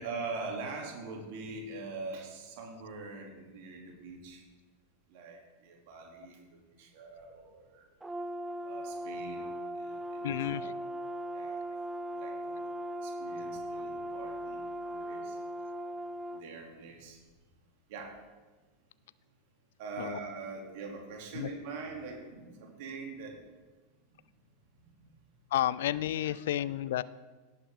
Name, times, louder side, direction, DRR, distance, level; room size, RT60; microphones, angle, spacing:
voice 1, 0.0-4.4 5.1-7.9 8.6-10.8 11.3-11.6 12.1-12.7 13.0-15.4 16.3-17.2 17.9-18.2 19.8-23.4 24.8-25.1 26.2-26.6, right 3 dB, 55° right, 0 dB, 2.8 m, -43 dB
Brass instrument, 8.0-16.4, right 1 dB, 10° right, 0.6 m, -38 dB
voice 2, 10.2-10.7 20.0-20.2 21.3-21.5 25.5-27.0, left 12 dB, 60° left, 18 dB, 0.4 m, -31 dB
17.5 x 7.7 x 3.7 m, 1.3 s
figure-of-eight pair, 90°, 0 cm